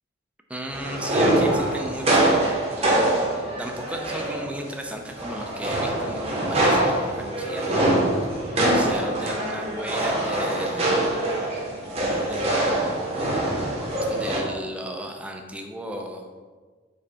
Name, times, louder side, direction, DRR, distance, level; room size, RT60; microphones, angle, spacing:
voice 1, 0.5-2.4 2.8-3.1 3.6-7.8 8.6-11.0 12.2-12.9 14.1-16.3, equal, 5° right, 3 dB, 0.3 m, -35 dB
sound 1, 0.7-4.7 5.1-14.4, right 1 dB, 30° right, 0.8 m, -24 dB
5.0 x 2.2 x 4.3 m, 1.4 s
head